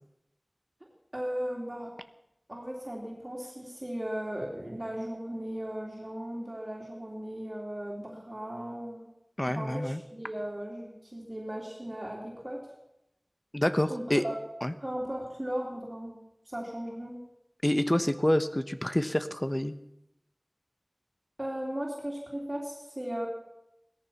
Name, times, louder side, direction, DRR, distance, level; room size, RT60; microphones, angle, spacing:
voice 1, 1.1-1.9 2.5-9.1 9.5-12.6 13.9-14.3 14.8-16.2 16.5-17.2 21.4-23.3, equal, 35° right, -2 dB, 3.3 m, -36 dB
voice 2, 9.4-10.0 13.5-14.2 14.6-14.7 17.6-19.7, left 1 dB, 25° left, 10 dB, 1.0 m, -27 dB
18.0 x 13.5 x 5.9 m, 0.86 s
wide cardioid pair, 40°, 0 cm